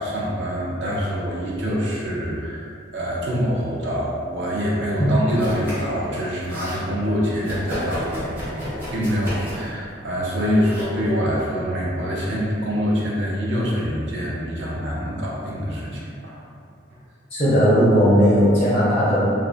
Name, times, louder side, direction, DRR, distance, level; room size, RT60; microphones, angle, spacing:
voice 1, 0.0-16.4, equal, 70° right, -5 dB, 0.6 m, -25 dB
Domestic sounds home sounds, 5.3-6.0 6.2-6.8 7.4-9.8 10.6-10.8, equal, 10° right, 0.6 m, -32 dB
voice 2, 17.3-19.3, equal, 25° left, -10 dB, 0.4 m, -17 dB
2.5 x 2.1 x 2.4 m, 2.4 s
head